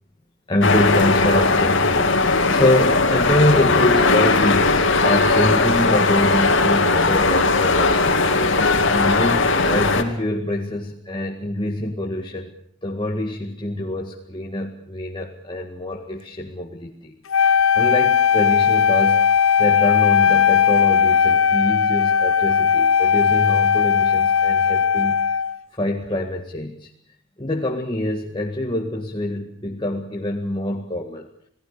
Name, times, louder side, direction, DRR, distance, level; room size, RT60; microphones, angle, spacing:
voice 1, 0.5-8.2 8.9-12.5 12.8-17.2 17.4-19.2 19.6-25.2 25.8-26.9 27.4-31.3, left 1 dB, 25° left, 1 dB, 1.9 m, -25 dB
sound 1, 0.6-10.0, left 3 dB, 65° left, 2.8 m, -18 dB
Wind instrument woodwind instrument, 17.3-25.6, left 7 dB, 85° left, 0.9 m, -17 dB
29.5 x 18.5 x 6.7 m, 0.69 s
head